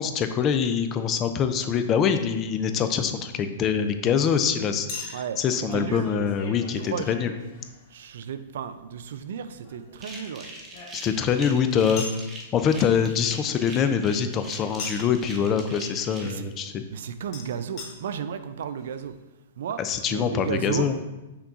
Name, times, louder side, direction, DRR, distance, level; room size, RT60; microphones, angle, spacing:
voice 1, 0.0-7.3 10.9-12.0 12.5-16.8 19.8-21.0, left 7 dB, 30° left, 9 dB, 0.4 m, -24 dB
Chink clink, 2.1-2.2 4.9-8.1 9.6-11.3 12.0-12.2 14.8-15.2 17.3-17.4 17.8-17.9 18.6-18.7 18.8-18.9, left 3 dB, 45° left, 1.1 m, -39 dB
voice 2, 5.7-6.1 6.9-7.1 7.9-10.5 16.2-16.4 16.9-19.2 19.6-20.9, right 8 dB, 70° right, 11 dB, 0.3 m, -33 dB
sound 1, 10.0-16.3, right 2 dB, 20° right, 0.9 m, -42 dB
5.8 x 2.3 x 3.9 m, 1.0 s
hypercardioid pair, 135°, 0 cm